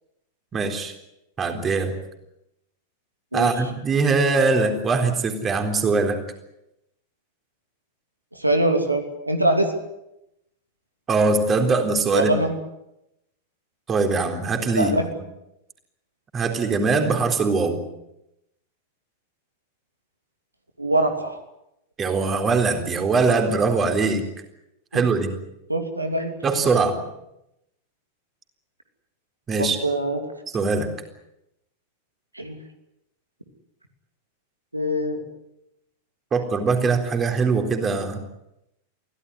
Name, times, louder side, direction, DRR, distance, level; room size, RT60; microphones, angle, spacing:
voice 1, 0.5-0.9 1.4-1.9 3.3-6.2 11.1-12.3 13.9-15.0 16.3-17.8 22.0-24.2 24.9-25.4 26.4-27.0 29.5-29.8 30.5-30.9 36.3-38.2, right 4 dB, 20° right, 5 dB, 3.9 m, -22 dB
voice 2, 8.3-9.7 12.1-12.5 14.7-15.0 20.8-21.4 24.9-25.0 25.7-26.3 29.6-30.2 32.3-32.6 34.7-35.2, right 1 dB, 85° right, 6 dB, 2.9 m, -23 dB
24.0 x 16.5 x 9.8 m, 0.85 s
figure-of-eight pair, 90°, 0 cm